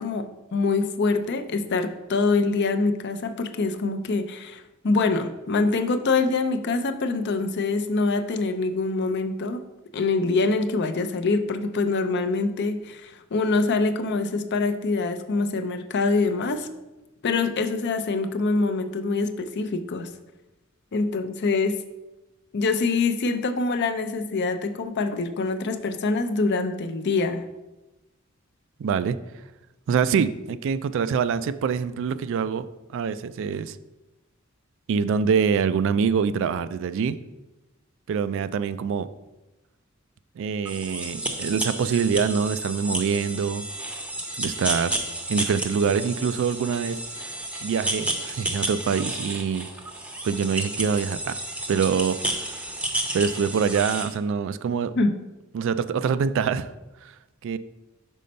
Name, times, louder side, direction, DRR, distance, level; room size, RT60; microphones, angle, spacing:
voice 1, 0.0-9.7 9.9-16.7 17.2-20.1 20.9-21.8 22.5-27.5 55.0-55.2, left 3 dB, 55° left, 9 dB, 0.5 m, -25 dB
voice 2, 28.8-29.2 29.9-32.7 32.9-33.8 34.9-37.2 38.1-39.1 40.4-43.7 44.4-44.9 45.3-47.0 47.6-49.7 50.2-51.4 51.7-52.2 53.1-54.9 55.5-56.7 57.0-57.1 57.4-57.6, right 6 dB, 65° right, 14 dB, 0.3 m, -25 dB
sound 1, 40.7-54.1, right 1 dB, 5° right, 0.6 m, -31 dB
5.4 x 4.2 x 5.2 m, 1.0 s
head